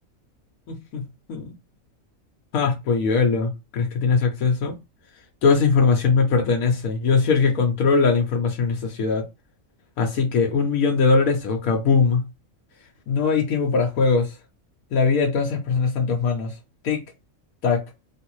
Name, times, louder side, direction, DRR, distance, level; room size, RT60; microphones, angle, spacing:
voice 1, 0.7-1.0 1.3-1.5 2.5-4.7 5.4-9.2 10.0-12.2 13.1-14.3 14.9-16.5 16.8-17.0 17.6-17.8, left 5 dB, 90° left, 1.1 m, -21 dB
3.2 x 2.5 x 3.0 m
omnidirectional pair, 1.4 m